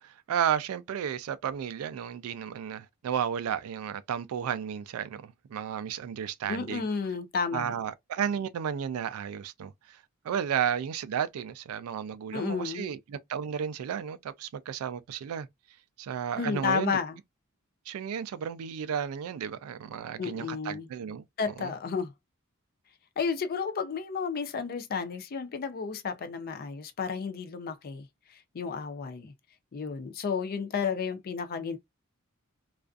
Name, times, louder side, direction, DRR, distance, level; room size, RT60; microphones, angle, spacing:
voice 1, 0.0-6.9 7.5-15.5 16.0-17.0 17.9-21.7, right 8 dB, 80° right, 0.3 m, -33 dB
voice 2, 6.5-7.7 12.3-12.9 16.4-17.2 20.2-20.9 21.4-22.1 23.2-28.0 28.5-29.3 29.7-31.8, left 5 dB, 45° left, 0.4 m, -32 dB
2.4 x 2.3 x 2.3 m
head